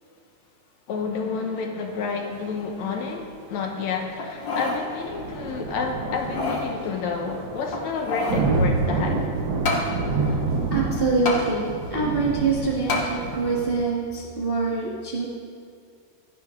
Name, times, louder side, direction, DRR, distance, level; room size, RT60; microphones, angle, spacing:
voice 1, 0.9-9.2, left 5 dB, 65° left, 3 dB, 2.1 m, -30 dB
sound 1, 4.2-4.8 5.3-5.4 6.1-6.7 7.7-8.5 9.6-9.9 11.2-11.4 12.9-13.1 13.7-13.8, left 3 dB, 45° left, 1.8 m, -27 dB
sound 2, 4.9-13.7, right 3 dB, 60° right, 1.2 m, -28 dB
voice 2, 10.7-15.3, right 4 dB, 40° right, -4 dB, 0.7 m, -25 dB
17.0 x 12.5 x 3.8 m, 2.2 s
omnidirectional pair, 3.8 m